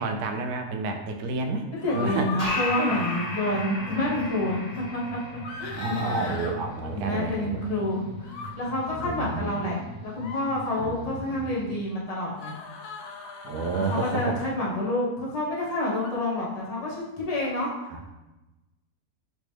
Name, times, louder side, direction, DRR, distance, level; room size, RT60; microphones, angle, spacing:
voice 1, 0.0-1.6 1.9-2.3 2.8-2.9 3.9-4.1 5.8-7.6 8.9-9.8 10.8-11.5 13.4-14.4 17.9-18.0, right 3 dB, 75° right, 4 dB, 1.1 m, -30 dB
voice 2, 1.7-4.6 5.1-5.2 5.6-6.4 6.9-12.5 13.8-17.7, left 1 dB, 30° left, -5 dB, 1.0 m, -28 dB
sound 1, 1.8-3.3 5.4-6.5 8.2-8.5 10.1-10.4 12.4-14.3 16.0-16.1, left 3 dB, 70° left, 0.6 m, -38 dB
sound 2, 2.4-9.4, left 1 dB, 50° left, 2.0 m, -36 dB
sound 3, 2.7-11.8, equal, 55° right, 0.8 m, -43 dB
5.1 x 3.2 x 3.3 m, 1.0 s
omnidirectional pair, 1.7 m